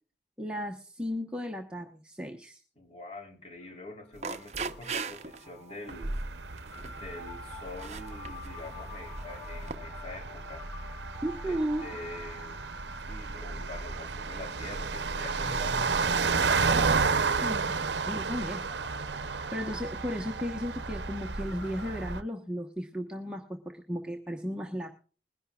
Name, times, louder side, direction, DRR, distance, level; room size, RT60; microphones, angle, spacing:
voice 1, 0.4-2.6 11.2-11.8 17.4-17.7 18.0-18.6 19.5-24.9, equal, 5° right, 1 dB, 1.1 m, -35 dB
voice 2, 2.7-6.2 6.8-10.6 11.4-12.6 13.1-17.4, left 2 dB, 35° left, 3 dB, 3.4 m, -45 dB
sound 1, 3.6-22.0, left 1 dB, 15° left, 3.0 m, -49 dB
sound 2, 4.1-5.5 5.9-6.2 6.6-7.1 7.7-8.5 9.2-9.7, right 5 dB, 40° right, 0.7 m, -38 dB
sound 3, 5.9-22.2, right 4 dB, 80° right, 0.8 m, -32 dB
21.5 x 11.0 x 2.4 m, 0.39 s
head